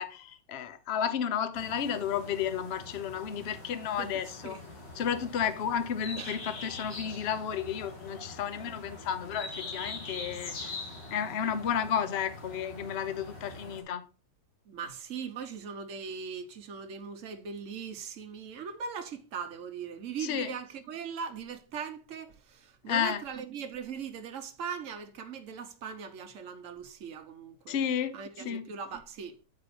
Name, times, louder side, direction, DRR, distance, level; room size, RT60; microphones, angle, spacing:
voice 1, 0.0-4.6 5.0-10.7 11.1-14.0 20.2-20.5 22.9-23.2 27.7-28.2 28.4-28.7, left 8 dB, 50° left, 0.7 m, -32 dB
sound 1, 1.5-13.8, left 3 dB, 80° left, 2.3 m, -43 dB
voice 2, 14.7-27.8 28.1-29.4, right 6 dB, 50° right, 1.1 m, -40 dB
8.7 x 4.8 x 4.2 m
omnidirectional pair, 1.9 m